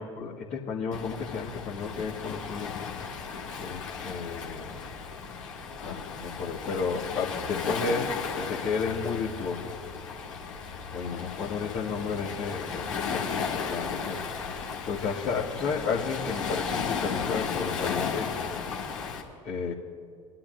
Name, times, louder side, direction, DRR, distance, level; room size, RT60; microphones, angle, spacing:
voice 1, 0.0-2.7 3.6-4.9 5.8-9.7 10.9-14.2 14.5-14.6 14.9-18.3 19.4-19.7, left 5 dB, 50° left, -6 dB, 1.8 m, -32 dB
Waves surf, 0.9-19.2, left 6 dB, 80° left, 1.8 m, -35 dB
24.5 x 11.5 x 2.6 m, 2.4 s
figure-of-eight pair, 65°, 16 cm